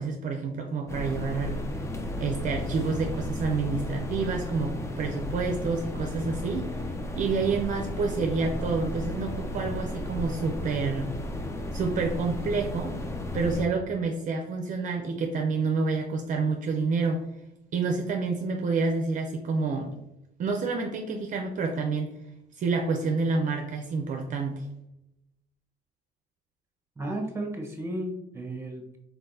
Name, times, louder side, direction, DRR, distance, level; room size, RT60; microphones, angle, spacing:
voice 1, 0.0-1.8 2.2-6.7 7.2-11.1 11.7-13.0 13.3-17.2 17.7-19.9 20.4-22.2 22.6-24.7, right 4 dB, 50° right, 3 dB, 0.5 m, -28 dB
sound 1, 0.9-13.7, left 1 dB, 15° left, 0.5 m, -34 dB
voice 2, 27.0-29.0, right 1 dB, 15° right, 2 dB, 1.0 m, -34 dB
4.4 x 4.0 x 2.7 m, 0.85 s
cardioid pair, 110°, 17 cm